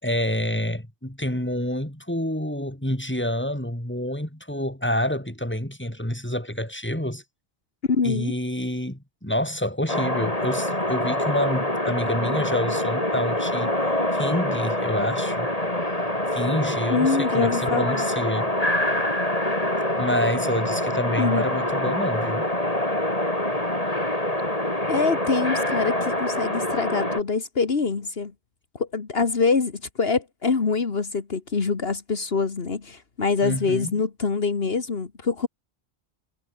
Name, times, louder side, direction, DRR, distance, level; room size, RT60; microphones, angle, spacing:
voice 1, 0.0-7.2 8.0-13.8 14.1-15.5 16.3-18.5 20.0-22.5 33.4-33.9, left 1 dB, 10° left, 4.5 m, -28 dB
voice 2, 7.9-8.3 16.9-18.1 21.2-21.4 24.9-28.3 28.8-35.5, left 4 dB, 70° left, 1.9 m, -25 dB
sound 1, 9.9-27.2, left 1 dB, 35° left, 6.0 m, -25 dB
omnidirectional pair, 1.1 m